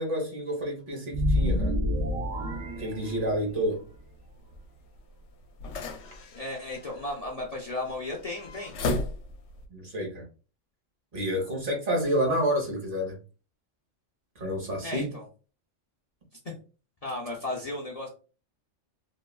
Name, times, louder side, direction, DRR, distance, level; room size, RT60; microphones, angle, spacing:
voice 1, 0.0-1.7 2.8-3.8 9.7-10.2 11.1-13.2 14.4-15.2, equal, 45° right, 1.0 m, -29 dB
sound 1, 1.1-3.7, left 1 dB, 80° right, 1.0 m, -28 dB
sound 2, 2.0-9.7, left 2 dB, 75° left, 0.9 m, -38 dB
voice 2, 6.3-8.7 14.8-15.3 17.0-18.1, left 2 dB, 50° left, 0.4 m, -34 dB
3.0 x 2.2 x 2.3 m
omnidirectional pair, 1.3 m